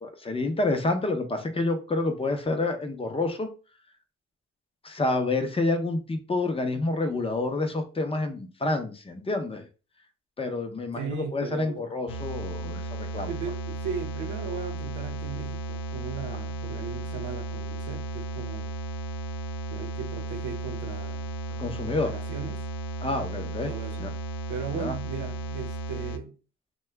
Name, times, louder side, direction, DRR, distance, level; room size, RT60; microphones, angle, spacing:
voice 1, 0.0-3.5 4.8-9.6 10.4-13.3 21.6-22.1 23.0-23.7 24.0-24.1 24.7-24.9, left 2 dB, 20° left, 0.6 m, -28 dB
voice 2, 11.0-11.9 13.3-18.7 19.7-21.3 21.6-22.6 23.4-24.1 24.5-26.3, right 6 dB, 85° right, 0.7 m, -37 dB
sound 1, 12.1-26.2, right 2 dB, 80° left, 0.5 m, -34 dB
2.7 x 2.2 x 3.3 m
cardioid pair, 90°, 30 cm